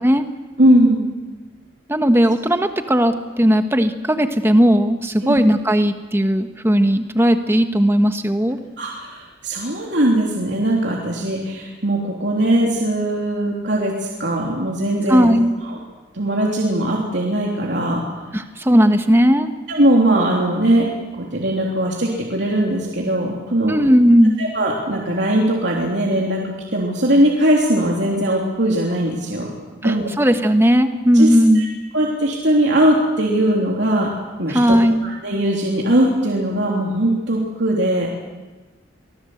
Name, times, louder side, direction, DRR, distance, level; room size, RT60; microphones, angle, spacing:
voice 1, 0.6-1.1 5.2-5.4 8.8-13.9 14.2-15.3 15.6-15.8 16.1-18.0 19.7-23.7 24.4-26.4 26.7-29.5 29.8-30.0 31.1-31.3 31.5-31.7 31.9-34.1 34.4-34.6 35.0-38.1, right 1 dB, 60° right, -2 dB, 3.3 m, -19 dB
voice 2, 1.9-8.6 15.1-15.5 18.3-19.5 23.7-24.4 29.8-31.7 34.5-35.1, equal, 10° right, 7 dB, 1.3 m, -16 dB
24.5 x 19.0 x 8.0 m, 1.2 s
head